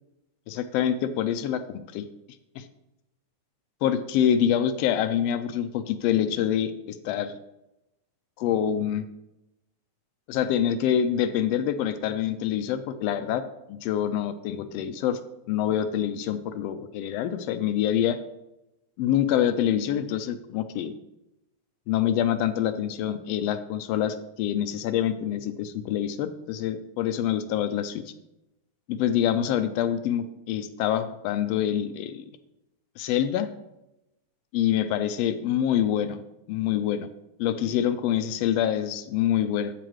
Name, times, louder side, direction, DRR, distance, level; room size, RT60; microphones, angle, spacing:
voice 1, 0.5-2.0 2.6-2.7 3.8-7.4 8.4-9.0 10.3-13.4 13.7-15.2 15.5-18.2 19.0-20.9 21.9-28.0 28.9-32.2 33.0-33.5 34.5-36.2 36.5-37.1 37.4-39.7, left 10 dB, 85° left, 10 dB, 1.4 m, -26 dB
9.1 x 8.8 x 3.1 m, 0.89 s
omnidirectional pair, 3.4 m